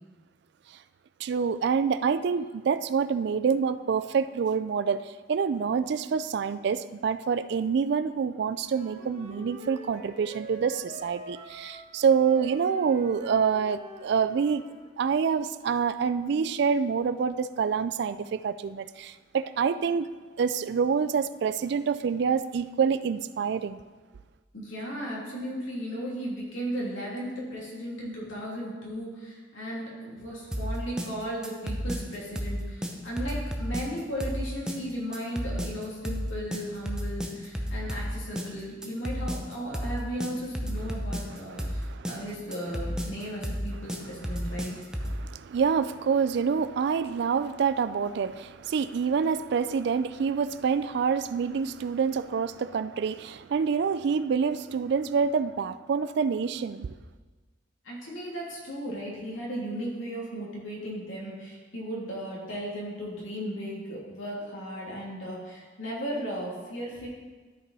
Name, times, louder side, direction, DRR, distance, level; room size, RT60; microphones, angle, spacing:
voice 1, 1.2-14.6 15.0-20.1 20.4-23.8 41.5-42.2 45.0-57.0, right 6 dB, 60° right, 0.3 m, -27 dB
Wind instrument woodwind instrument, 8.6-14.8, right 1 dB, 35° right, 1.1 m, -45 dB
voice 2, 24.5-44.8 57.8-67.1, equal, 80° left, 2.8 m, -36 dB
sound 1, 30.5-45.2, equal, 5° right, 0.6 m, -32 dB
12.5 x 5.4 x 4.1 m
head